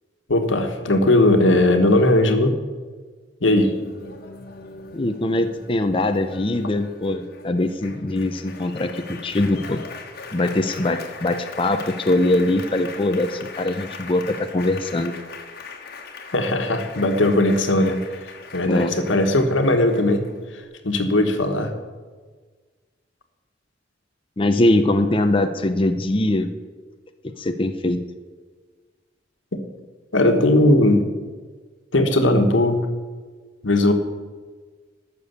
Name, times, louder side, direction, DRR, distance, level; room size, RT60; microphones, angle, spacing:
voice 1, 0.3-2.6 3.4-3.7 16.3-18.0 18.5-20.3 20.8-21.7 29.5-29.6 30.1-31.1 31.9-32.9 33.6-33.9, left 1 dB, 85° left, 6 dB, 1.4 m, -18 dB
Applause, 3.7-20.6, left 4 dB, 55° left, 1.4 m, -40 dB
voice 2, 4.9-9.8 10.3-15.1 18.6-18.9 24.4-26.5 27.4-28.0, left 1 dB, 30° left, 7 dB, 0.6 m, -22 dB
12.5 x 6.9 x 8.1 m, 1.5 s
head